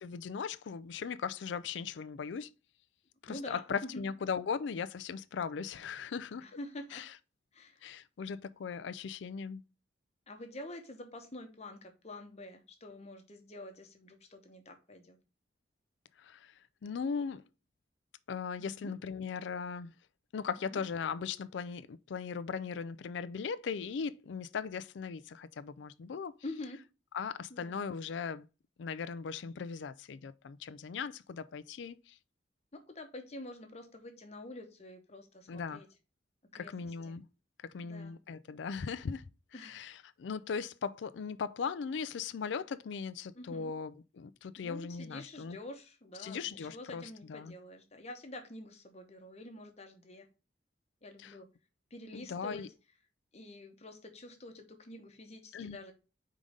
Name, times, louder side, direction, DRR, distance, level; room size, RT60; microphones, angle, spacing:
voice 1, 0.0-2.5 3.2-6.5 6.9-7.1 7.8-9.6 16.2-17.4 18.3-19.9 20.3-26.3 27.1-28.5 28.8-32.2 35.5-35.8 36.5-37.3 37.6-39.2 39.5-45.6 46.2-47.0 47.3-47.5 51.2-51.4 52.1-52.7 55.5-55.8, left 6 dB, 75° left, 0.4 m, -38 dB
voice 2, 3.3-4.0 6.4-7.0 7.5-7.8 10.3-15.2 18.6-18.9 20.4-20.8 26.4-26.8 27.5-27.8 32.7-35.9 36.5-37.2 37.8-38.1 39.5-39.7 43.3-43.7 44.6-50.3 51.0-51.5 51.9-52.7 53.3-55.9, left 1 dB, 35° left, 1.0 m, -47 dB
5.0 x 3.8 x 5.3 m
head